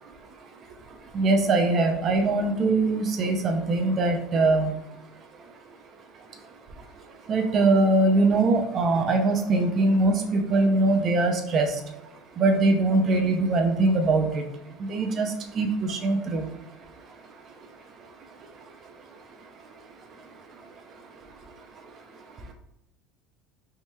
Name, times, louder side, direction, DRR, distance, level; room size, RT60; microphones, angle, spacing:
voice 1, 1.1-4.7 7.3-11.7 12.4-14.4 14.9-16.5, right 2 dB, 40° right, 4 dB, 0.6 m, -22 dB
3.6 x 3.0 x 2.7 m, 0.88 s
supercardioid pair, 100°, 0 cm